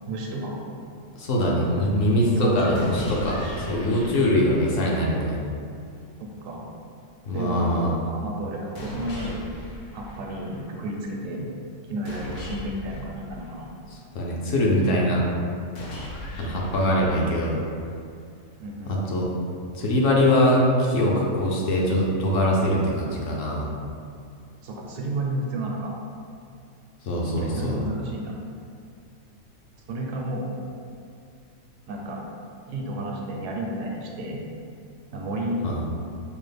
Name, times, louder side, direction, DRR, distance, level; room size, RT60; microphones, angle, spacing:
voice 1, 0.1-0.7 2.3-2.8 6.2-6.7 7.3-7.8 8.0-9.5 9.9-11.5 11.9-13.7 18.6-19.0 24.6-26.0 27.4-28.4 29.9-30.5 31.9-32.2 32.7-34.4 35.1-35.7, right 1 dB, 70° right, -1 dB, 0.9 m, -31 dB
voice 2, 1.1-5.4 7.3-7.9 14.1-15.3 16.4-17.6 18.9-19.3 19.7-23.7 27.0-27.8 35.6-35.8, left 1 dB, 70° left, -3 dB, 1.0 m, -22 dB
sound 1, 2.7-4.8 8.7-10.8 12.0-14.1 15.7-17.8, left 1 dB, 90° left, 1.2 m, -39 dB
5.3 x 2.1 x 3.3 m, 2.4 s
omnidirectional pair, 1.5 m